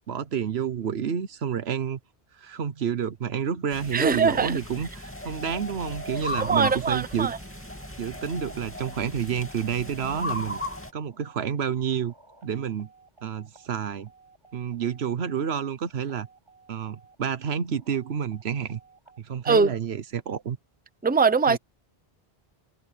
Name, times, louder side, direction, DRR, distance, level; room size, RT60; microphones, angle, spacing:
voice 1, 0.1-2.0 2.4-7.3 8.0-10.6 10.9-12.1 12.4-12.9 13.2-14.1 14.5-16.3 16.7-18.8 19.2-20.6 21.5-21.6, right 7 dB, 85° right, 1.2 m, -29 dB
sound 1, 3.7-10.9, left 1 dB, 10° left, 2.6 m, -36 dB
voice 2, 3.9-4.6 6.4-7.4 19.4-19.7 21.0-21.6, right 5 dB, 10° right, 0.6 m, -22 dB
sound 2, 7.4-19.4, right 4 dB, 25° right, 5.1 m, -57 dB
omnidirectional pair, 1.0 m